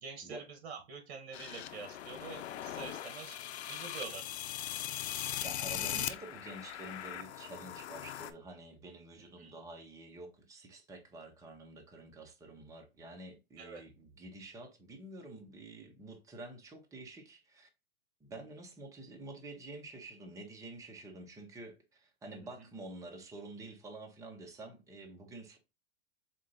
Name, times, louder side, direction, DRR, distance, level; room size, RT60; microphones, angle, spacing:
voice 1, 0.0-3.4 3.7-4.2 9.4-9.5 13.6-13.8 22.4-22.5, right 5 dB, 65° right, 1.2 m, -46 dB
sound 1, 1.3-8.3, left 11 dB, 80° left, 0.6 m, -40 dB
voice 2, 5.4-17.7 18.2-25.6, right 2 dB, 10° right, 0.7 m, -49 dB
4.5 x 2.5 x 3.8 m
hypercardioid pair, 135°, 33 cm